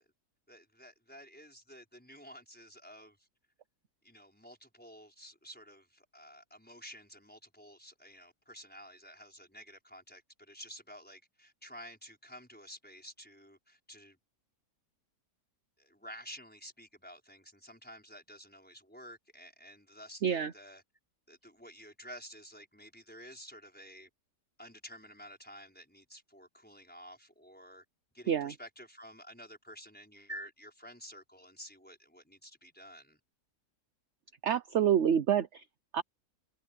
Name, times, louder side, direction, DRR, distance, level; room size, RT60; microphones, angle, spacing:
voice 1, 0.5-3.3 4.0-14.2 15.8-20.8 21.3-24.1 24.6-27.8 28.1-33.2, equal, 5° left, 5.5 m, -51 dB
voice 2, 34.4-35.6 35.9-36.0, right 9 dB, 55° right, 1.0 m, -27 dB
omnidirectional pair, 1.7 m